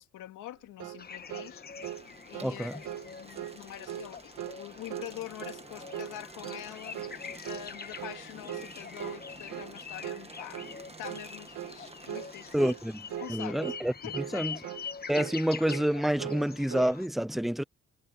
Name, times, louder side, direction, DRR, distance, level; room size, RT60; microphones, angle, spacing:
voice 1, 0.0-1.6 2.3-7.0 7.4-10.6 11.0-12.8 13.2-13.6 14.0-14.5, left 13 dB, 85° left, 2.7 m, -45 dB
sound 1, 0.8-1.0 1.3-1.5 1.8-2.0 2.3-2.6 2.8-3.1 3.4-3.6 3.9-4.1 4.4-4.6 4.9-5.1 5.4-5.6 5.9-6.2 6.4-6.7 6.9-7.2 7.4-7.7 8.0-8.2 8.5-8.7 9.0-9.2 9.5-9.7 10.0-10.2 10.5-10.7 11.0-11.3 11.5-11.8 12.1-12.3 12.6-12.8 13.1-13.3 13.6-13.8 14.1-14.4 14.6-14.9 15.1-15.4 15.6-15.9 16.2-16.9, right 12 dB, 85° right, 2.4 m, -39 dB
sound 2, 1.0-17.1, left 6 dB, 30° left, 1.3 m, -45 dB
sound 3, 1.7-13.3, right 3 dB, 20° right, 1.6 m, -51 dB
voice 2, 2.4-2.7 12.5-13.0 13.3-14.6 15.1-17.6, equal, ahead, 0.3 m, -28 dB
cardioid pair, 90°, 30 cm